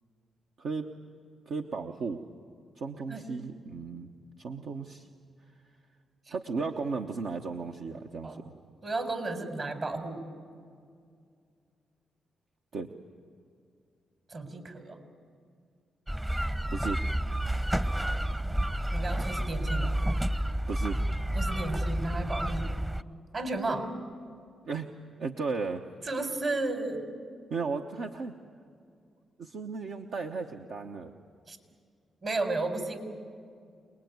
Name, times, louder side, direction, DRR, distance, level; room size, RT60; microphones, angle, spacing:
voice 1, 0.6-0.9 1.5-2.2 2.7-4.1 4.4-5.1 6.3-8.5 12.7-12.9 16.7-17.0 20.7-21.0 24.7-24.9 25.2-25.8 27.5-28.3 29.4-31.1, right 4 dB, 75° right, 3 dB, 1.1 m, -35 dB
voice 2, 8.8-10.2 14.3-15.0 17.6-18.4 18.9-20.0 21.3-22.7 23.3-23.9 26.1-27.1 31.5-31.6 32.2-33.0, right 2 dB, 50° right, 6 dB, 4.4 m, -33 dB
sound 1, 16.1-23.0, right 1 dB, 15° right, 0.9 m, -30 dB
27.5 x 20.0 x 9.5 m, 2.3 s
supercardioid pair, 55°, 0 cm